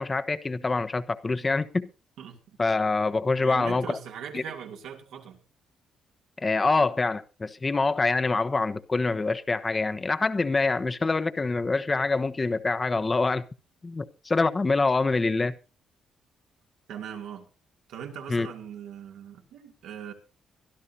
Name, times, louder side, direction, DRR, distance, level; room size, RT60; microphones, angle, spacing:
voice 1, 0.0-1.9 2.6-3.8 4.3-4.4 6.4-13.4 13.8-15.5 18.3-18.5, left 3 dB, 25° left, 1.0 m, -25 dB
voice 2, 2.2-2.6 3.4-5.4 16.9-17.5 17.9-20.1, right 8 dB, 85° right, 2.7 m, -40 dB
23.5 x 12.5 x 2.8 m
cardioid pair, 90°, 0 cm